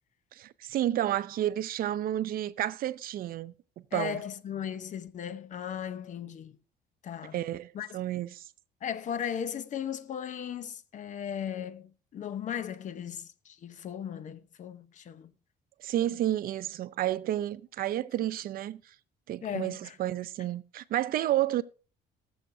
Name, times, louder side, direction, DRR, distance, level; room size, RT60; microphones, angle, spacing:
voice 1, 0.3-3.5 3.9-4.2 7.3-8.5 15.8-18.8 19.3-21.6, right 13 dB, 60° right, 0.6 m, -31 dB
voice 2, 3.9-6.6 7.0-7.4 7.7-7.9 8.8-15.3 19.4-20.0, left 9 dB, 50° left, 0.8 m, -37 dB
19.5 x 7.2 x 2.7 m
cardioid pair, 110°, 17 cm